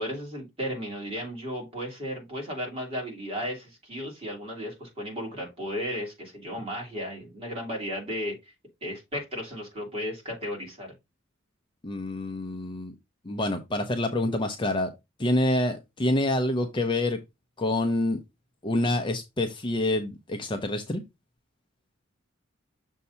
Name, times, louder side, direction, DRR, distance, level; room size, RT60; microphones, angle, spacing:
voice 1, 0.0-8.4 8.8-10.9, equal, 25° right, 2.7 m, -34 dB
voice 2, 11.8-12.9 13.2-14.9 15.2-17.2 17.6-18.2 18.6-21.0, left 1 dB, 20° left, 0.6 m, -27 dB
6.6 x 2.7 x 5.5 m
head